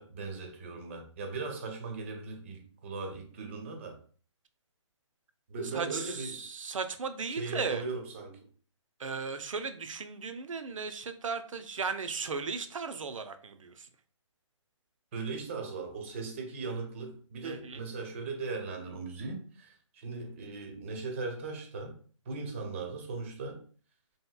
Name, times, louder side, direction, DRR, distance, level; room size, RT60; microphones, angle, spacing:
voice 1, 0.0-4.0 5.5-6.4 7.3-8.4 15.1-21.9 22.3-23.6, right 3 dB, 25° right, 0.4 m, -38 dB
voice 2, 5.7-7.8 9.0-13.9 17.4-17.8, right 5 dB, 85° right, 0.5 m, -36 dB
2.8 x 2.7 x 2.2 m
hypercardioid pair, 155°, 16 cm